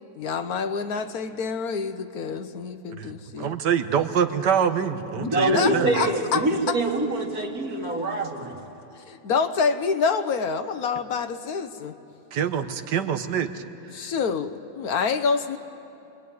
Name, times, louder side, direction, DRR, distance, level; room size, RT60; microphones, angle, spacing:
voice 1, 0.2-3.5 5.1-6.4 9.1-11.9 12.6-12.7 13.9-15.6, left 5 dB, 65° left, 9 dB, 1.3 m, -27 dB
voice 2, 3.4-5.9 12.3-13.6, right 8 dB, 90° right, 8 dB, 1.7 m, -25 dB
voice 3, 5.3-8.6, right 1 dB, 60° right, 1 dB, 2.7 m, -25 dB
27.5 x 21.5 x 9.4 m, 2.7 s
omnidirectional pair, 1.8 m